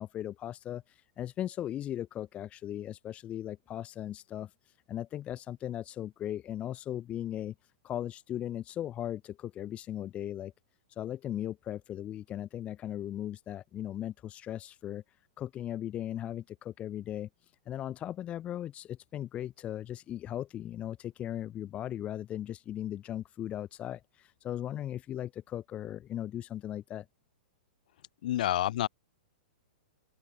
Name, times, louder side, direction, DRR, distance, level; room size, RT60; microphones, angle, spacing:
voice 1, 0.0-4.5 4.9-7.5 7.8-10.5 10.9-15.0 15.4-17.3 17.7-27.1, left 11 dB, 25° left, 0.8 m, -38 dB
voice 2, 28.2-28.9, left 13 dB, 55° left, 1.4 m, -28 dB
open air
figure-of-eight pair, 105°, 5 cm